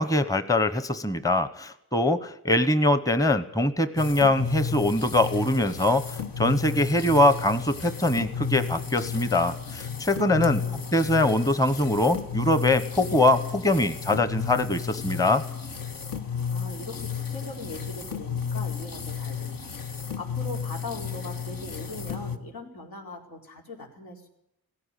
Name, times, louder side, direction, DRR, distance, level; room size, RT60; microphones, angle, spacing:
voice 1, 0.0-6.0 6.4-10.6 10.9-15.4, left 1 dB, 10° left, 12 dB, 0.9 m, -23 dB
sound 1, 4.0-22.4, left 7 dB, 70° left, 1.6 m, -33 dB
voice 2, 10.6-11.0 16.5-19.7 20.2-24.3, left 2 dB, 90° left, 0 dB, 4.6 m, -40 dB
17.5 x 15.5 x 9.9 m, 0.82 s
wide cardioid pair, 125°, 35 cm